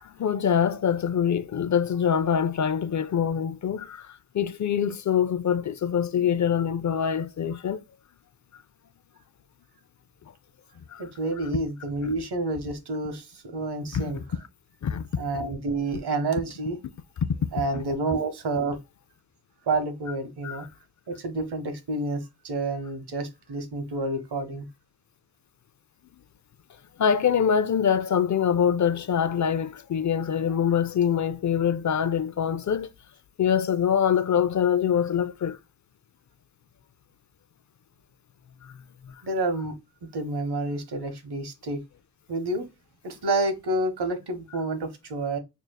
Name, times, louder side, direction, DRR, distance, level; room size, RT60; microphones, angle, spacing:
voice 1, 0.0-7.8 10.9-11.0 13.9-14.1 14.8-15.1 17.2-17.5 20.4-20.6 27.0-32.9 33.4-35.6 38.6-38.7, left 8 dB, 50° left, 0.4 m, -24 dB
voice 2, 11.0-14.2 15.2-16.8 17.5-18.8 19.7-20.7 21.1-24.7 39.2-39.7 40.0-41.8 42.3-42.7 43.0-45.4, right 2 dB, 80° right, 1.0 m, -29 dB
6.1 x 2.8 x 2.2 m
cardioid pair, 60°, 39 cm